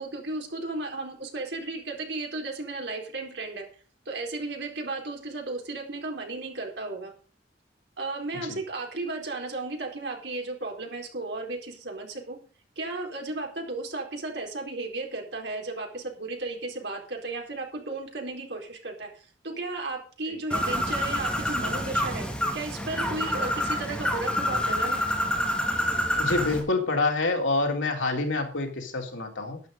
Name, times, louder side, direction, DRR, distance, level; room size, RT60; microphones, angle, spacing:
voice 1, 0.0-3.7 4.1-7.1 8.0-12.4 12.8-22.3 22.5-25.0, right 2 dB, 60° right, 1 dB, 4.2 m, -34 dB
Bird, 20.5-26.6, equal, 5° left, 3.0 m, -27 dB
voice 2, 26.2-29.6, left 3 dB, 80° left, 2 dB, 3.6 m, -27 dB
12.0 x 10.5 x 5.2 m, 0.39 s
head